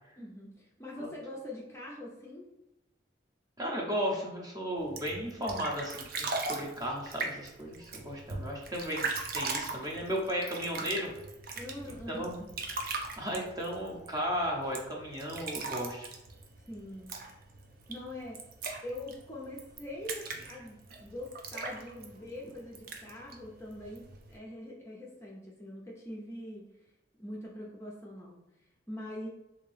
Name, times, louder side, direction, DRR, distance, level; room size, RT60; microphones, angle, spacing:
voice 1, 0.2-2.5 10.8-11.0 11.5-12.3 16.7-17.1 17.9-18.4 18.8-26.7 27.2-28.4 28.9-29.3, left 1 dB, 15° left, -3 dB, 0.5 m, -43 dB
voice 2, 3.6-11.1 12.1-12.5 13.2-16.1, equal, 20° right, -1 dB, 0.7 m, -35 dB
sound 1, 4.8-24.4, right 3 dB, 55° right, 0.5 m, -40 dB
3.5 x 2.6 x 3.3 m, 0.93 s
head